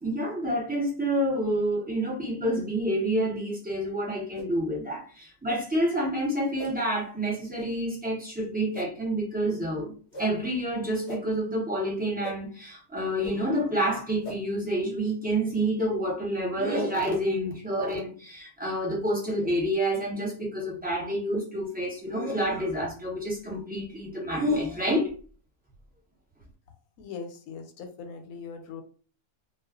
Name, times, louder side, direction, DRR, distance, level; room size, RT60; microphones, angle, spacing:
voice 1, 0.0-9.9 10.2-25.1, right 1 dB, 10° right, 0.5 m, -28 dB
sound 1, 4.3-4.5 5.5-5.6 6.6-6.7 7.6-7.7 8.7-8.9 10.1-10.3 11.1-11.2 12.2-12.4 13.2-13.3 14.2-14.4, right 1 dB, 60° left, 0.8 m, -40 dB
voice 2, 27.0-28.8, left 5 dB, 80° left, 1.0 m, -40 dB
2.4 x 2.3 x 2.3 m
omnidirectional pair, 1.5 m